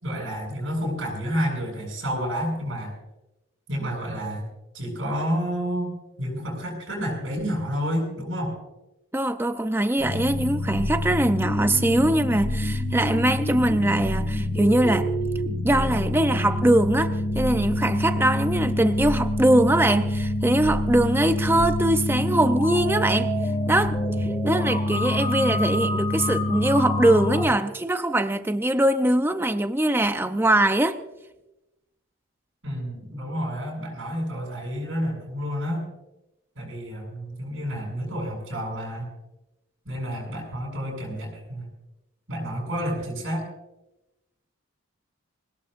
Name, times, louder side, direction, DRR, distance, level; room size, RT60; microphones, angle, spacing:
voice 1, 0.0-3.0 3.7-4.4 4.7-8.6 32.6-35.9 36.6-39.1 39.9-41.7 42.3-43.5, equal, 70° right, 7.1 m, -30 dB
voice 2, 9.1-15.1 15.6-23.3 23.7-31.0, right 1 dB, 10° right, 0.6 m, -22 dB
sound 1, 10.0-27.4, left 1 dB, 25° left, 4.9 m, -26 dB
25.5 x 18.0 x 2.6 m
head